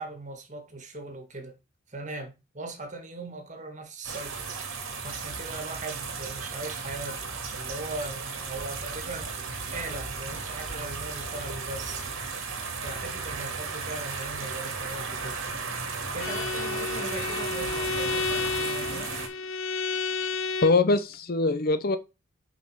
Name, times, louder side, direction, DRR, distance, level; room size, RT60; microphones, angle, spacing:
voice 1, 0.0-1.6 1.9-4.5 5.0-9.3 9.7-12.0 12.8-15.4 16.1-19.1, right 2 dB, 35° right, 1.7 m, -39 dB
sound 1, 4.0-19.3, right 4 dB, 85° right, 2.1 m, -35 dB
Bowed string instrument, 16.2-20.9, left 4 dB, 75° left, 0.8 m, -31 dB
voice 2, 20.6-22.0, left 3 dB, 45° left, 0.6 m, -23 dB
7.0 x 5.3 x 4.9 m
head